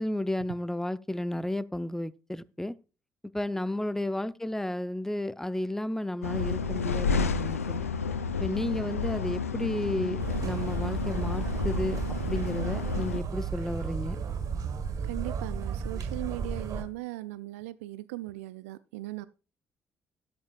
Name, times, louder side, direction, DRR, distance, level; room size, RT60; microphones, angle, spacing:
voice 1, 0.0-2.8 3.3-7.9 8.4-12.0 12.3-14.2, left 1 dB, 5° left, 0.6 m, -32 dB
sound 1, 6.2-13.2, left 5 dB, 85° left, 0.5 m, -31 dB
sound 2, 10.2-16.8, right 6 dB, 50° right, 1.6 m, -33 dB
voice 2, 15.0-19.3, right 18 dB, 75° right, 0.4 m, -38 dB
13.0 x 10.5 x 2.3 m
figure-of-eight pair, 45°, 8 cm